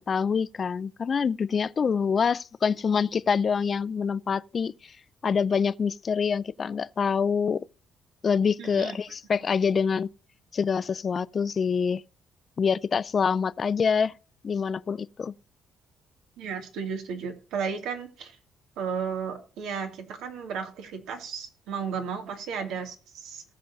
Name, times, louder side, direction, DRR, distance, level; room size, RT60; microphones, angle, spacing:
voice 1, 0.0-5.0 5.2-7.6 8.2-10.1 10.5-12.0 12.6-14.1 14.4-15.3, left 6 dB, 35° left, 0.4 m, -26 dB
voice 2, 8.6-9.0 16.4-18.4 18.8-23.4, right 6 dB, 90° right, 2.5 m, -34 dB
19.0 x 6.7 x 2.7 m
cardioid pair, 130°, 0 cm